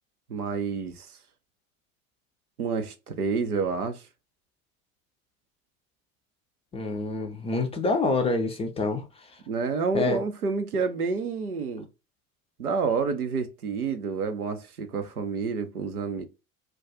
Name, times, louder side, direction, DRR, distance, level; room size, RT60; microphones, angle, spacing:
voice 1, 0.3-1.1 2.6-4.0 9.5-11.9 12.6-16.2, right 5 dB, 90° right, 0.6 m, -29 dB
voice 2, 6.7-9.0 9.9-10.2, left 3 dB, 15° left, 0.4 m, -26 dB
2.3 x 2.3 x 3.9 m
figure-of-eight pair, 75°, 43 cm